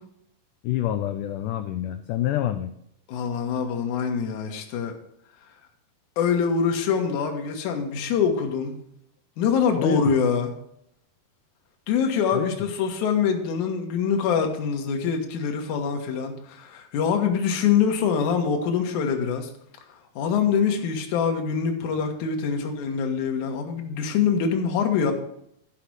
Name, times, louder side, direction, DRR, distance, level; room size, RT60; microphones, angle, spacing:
voice 1, 0.6-2.7 9.8-10.1 12.3-12.6, left 12 dB, 90° left, 9 dB, 1.8 m, -27 dB
voice 2, 3.1-4.9 6.2-8.7 9.4-10.5 11.9-19.5 20.2-25.1, left 6 dB, 65° left, 3 dB, 2.4 m, -24 dB
11.5 x 5.8 x 6.2 m, 0.73 s
omnidirectional pair, 4.3 m